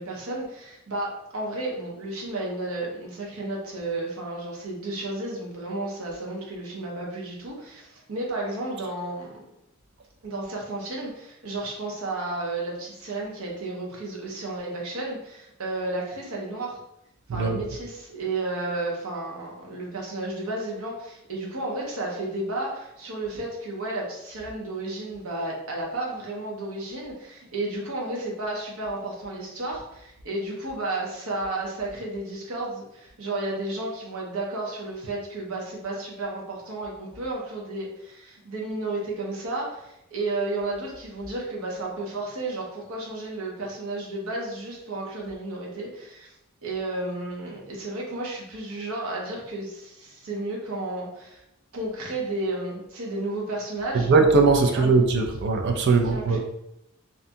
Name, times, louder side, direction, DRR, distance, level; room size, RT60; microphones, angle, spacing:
voice 1, 0.0-9.4 10.2-16.8 17.3-46.3 46.6-51.4 51.7-54.1 54.6-54.9 56.0-56.4, right 2 dB, 80° right, -1 dB, 0.7 m, -32 dB
voice 2, 17.3-17.6 53.9-56.4, right 4 dB, 55° right, 4 dB, 0.4 m, -20 dB
2.6 x 2.2 x 2.6 m, 0.82 s
head